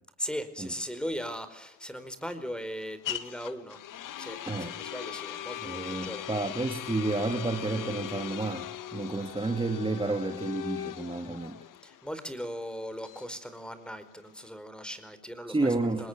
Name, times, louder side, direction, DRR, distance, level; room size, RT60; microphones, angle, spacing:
voice 1, 0.2-3.8 4.2-6.3 9.1-9.3 11.8-16.1, equal, 5° left, 12 dB, 4.7 m, -38 dB
sound 1, 0.7-14.5, left 11 dB, 70° left, 2.0 m, -40 dB
voice 2, 5.6-11.6 15.5-16.1, right 2 dB, 15° right, 5 dB, 2.7 m, -31 dB
26.5 x 20.5 x 7.6 m, 0.68 s
cardioid pair, 85°, 34 cm